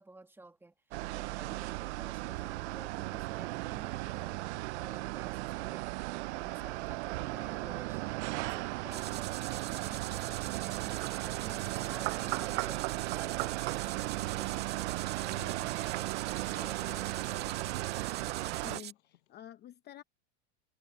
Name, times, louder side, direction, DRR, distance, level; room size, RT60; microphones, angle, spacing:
voice 1, 0.0-4.5 4.8-5.9 6.3-15.5, right 2 dB, 5° right, 1.7 m, -53 dB
sound 1, 0.9-18.8, right 20 dB, 80° right, 0.5 m, -36 dB
Livestock farm animals working animals, 2.6-2.7 3.5-19.4, left 15 dB, 85° left, 7.8 m, -63 dB
sound 2, 8.9-18.9, right 11 dB, 30° right, 1.9 m, -44 dB
voice 2, 15.3-16.1 18.6-20.0, left 12 dB, 30° left, 0.8 m, -51 dB
supercardioid pair, 145°, 34 cm